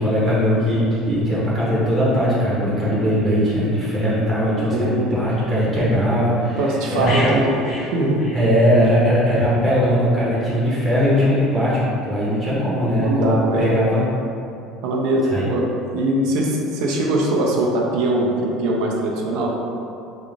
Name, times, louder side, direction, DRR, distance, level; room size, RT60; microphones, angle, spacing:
voice 1, 0.0-7.3 8.3-14.0 15.3-15.4, equal, 25° right, -8 dB, 0.8 m, -19 dB
voice 2, 4.7-5.1 6.6-7.6 7.9-8.3 13.0-13.9 14.8-15.7 15.9-19.5, right 1 dB, 70° right, -2 dB, 0.5 m, -21 dB
sound 1, 7.1-9.0 9.3-9.5, left 1 dB, 55° left, 0.9 m, -30 dB
3.7 x 2.3 x 3.3 m, 2.6 s
cardioid pair, 135°, 0 cm